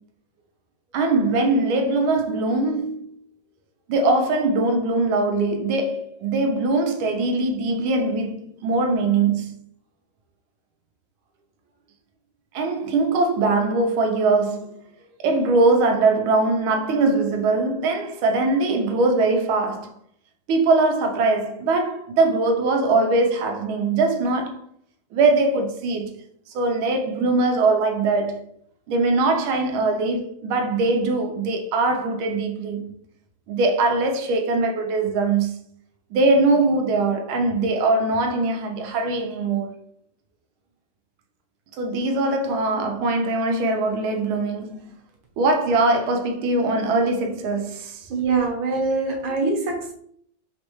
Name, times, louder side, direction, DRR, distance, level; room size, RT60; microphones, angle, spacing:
voice 1, 0.9-3.1 3.9-9.6 12.5-14.8 15.2-19.9 20.5-24.6 25.1-26.1 26.5-28.4 28.9-32.9 33.5-35.5 36.1-39.8 41.8-44.9 45.4-48.1, right 3 dB, 85° right, 1.5 m, -21 dB
voice 2, 48.1-49.9, right 4 dB, 70° right, 1.7 m, -23 dB
5.0 x 3.2 x 3.0 m
omnidirectional pair, 2.2 m